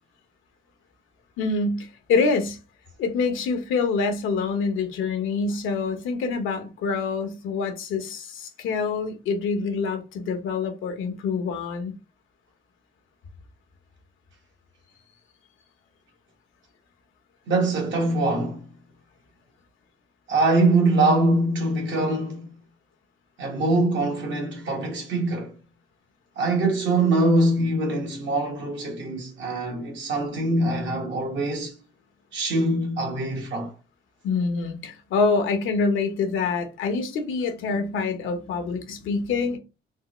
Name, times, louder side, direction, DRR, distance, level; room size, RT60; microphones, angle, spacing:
voice 1, 1.4-2.6 3.0-11.9 34.2-39.6, left 4 dB, 85° left, 0.8 m, -26 dB
voice 2, 17.5-18.7 20.3-22.5 23.4-25.6 26.4-31.7 32.3-33.7, right 2 dB, 70° right, 1.2 m, -23 dB
3.5 x 2.1 x 3.0 m
cardioid pair, 90°, 20 cm